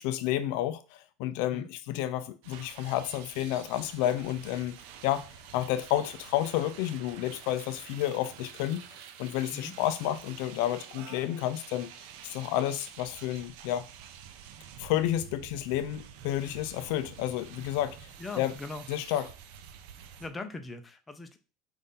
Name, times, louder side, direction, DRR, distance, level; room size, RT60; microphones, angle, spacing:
voice 1, 0.0-4.8 5.0-5.3 5.5-8.9 9.2-11.9 12.2-13.8 14.8-18.1 18.4-18.5 18.9-19.3, left 13 dB, 70° left, 0.4 m, -30 dB
sound 1, 2.4-20.3, right 8 dB, 70° right, 0.5 m, -48 dB
voice 2, 18.2-18.8 20.2-21.4, left 3 dB, 15° left, 0.6 m, -40 dB
5.3 x 2.6 x 3.8 m
supercardioid pair, 125°, 0 cm